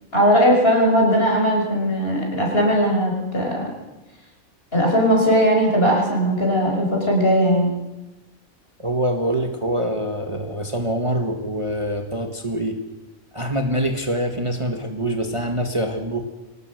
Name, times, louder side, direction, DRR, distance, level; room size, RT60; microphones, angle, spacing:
voice 1, 0.1-3.7 4.7-7.7, equal, 45° left, 0 dB, 6.3 m, -18 dB
voice 2, 8.8-12.8 13.3-16.3, right 1 dB, 20° right, 3 dB, 1.7 m, -25 dB
25.0 x 18.5 x 6.4 m, 1.1 s
omnidirectional pair, 1.4 m